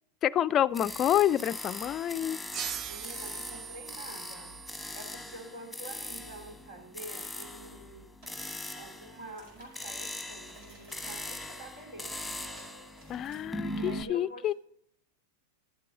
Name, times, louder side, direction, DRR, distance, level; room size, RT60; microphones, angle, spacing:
voice 1, 0.2-2.4 13.1-14.5, left 11 dB, 35° left, 0.3 m, -28 dB
sound 1, 0.7-14.0, left 1 dB, ahead, 1.2 m, -41 dB
sound 2, 2.5-5.8, right 8 dB, 35° right, 0.4 m, -41 dB
voice 2, 2.9-4.6 4.9-8.1 8.7-12.1 13.7-14.5, right 1 dB, 75° right, 2.9 m, -47 dB
sound 3, 8.2-8.4 8.8-13.4, right 2 dB, 60° right, 4.8 m, -58 dB
11.5 x 7.6 x 3.9 m
hypercardioid pair, 100°, 0 cm